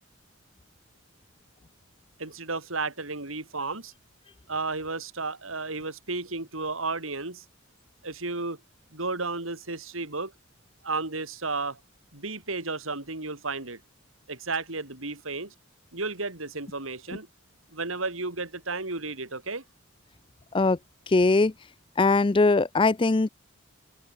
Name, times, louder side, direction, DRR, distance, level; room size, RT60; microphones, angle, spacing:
voice 1, 2.2-3.9 4.5-7.4 8.0-8.6 8.9-10.3 10.8-11.8 12.1-13.8 14.3-15.5 15.9-17.3 17.7-19.6, right 3 dB, 85° right, 4.6 m, -33 dB
voice 2, 21.1-21.5 22.0-23.3, left 3 dB, 25° left, 0.5 m, -21 dB
open air
head